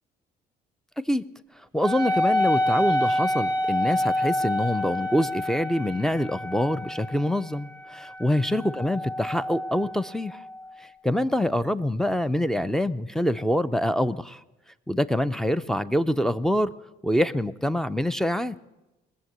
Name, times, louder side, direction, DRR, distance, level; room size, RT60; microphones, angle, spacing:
voice 1, 1.7-10.4 10.8-14.4 14.9-16.7 17.0-18.6, left 1 dB, 5° left, 14 dB, 0.4 m, -25 dB
Wind instrument woodwind instrument, 1.8-10.8, left 1 dB, 25° left, 2.3 m, -28 dB
19.5 x 7.5 x 7.9 m, 1.0 s
cardioid pair, 110°, 17 cm